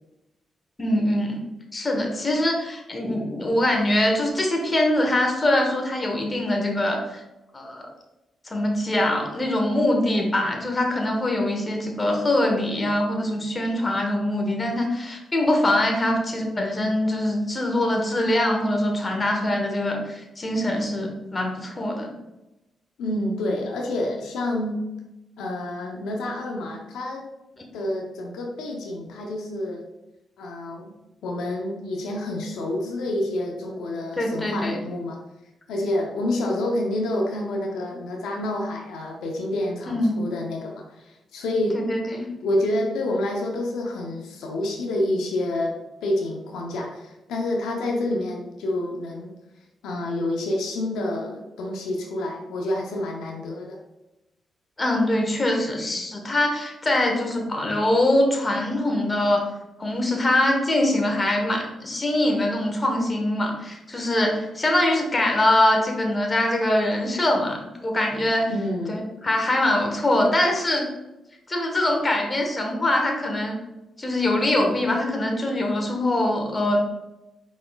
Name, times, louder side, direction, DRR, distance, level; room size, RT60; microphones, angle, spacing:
voice 1, 0.8-1.4 1.7-7.2 7.5-7.8 8.4-22.1 34.2-34.8 39.9-40.2 41.7-42.3 54.8-59.5 59.8-68.5 68.9-70.9 71.5-73.6 74.0-76.8, left 1 dB, 30° left, 2 dB, 1.1 m, -23 dB
voice 2, 23.0-24.8 25.4-27.2 27.7-29.8 30.4-31.0 31.2-35.2 35.7-41.8 42.4-45.7 46.0-49.3 49.8-53.8 68.5-69.1, left 1 dB, 85° left, 0 dB, 0.7 m, -28 dB
5.0 x 4.1 x 2.3 m, 0.95 s
cardioid pair, 70°, 0 cm